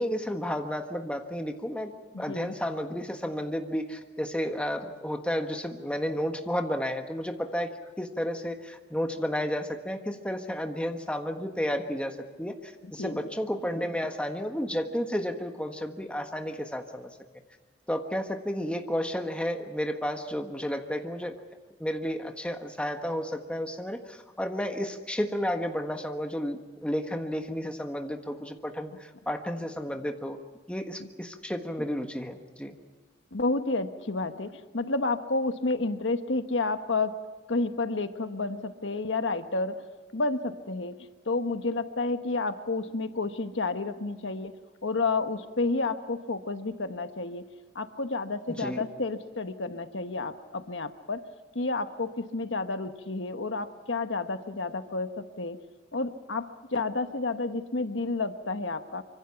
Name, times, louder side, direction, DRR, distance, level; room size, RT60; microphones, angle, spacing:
voice 1, 0.0-1.9 2.2-7.7 8.0-17.1 17.9-21.4 21.8-30.4 30.7-32.7 48.6-48.8, equal, 5° left, 5 dB, 1.4 m, -32 dB
voice 2, 2.1-2.5 13.0-13.2 31.0-31.1 33.3-37.2 37.5-39.8 40.1-40.9 41.2-44.5 44.8-47.5 47.7-51.2 51.5-55.6 55.9-59.0, left 3 dB, 85° left, 8 dB, 1.3 m, -30 dB
25.0 x 25.0 x 5.8 m, 1.3 s
head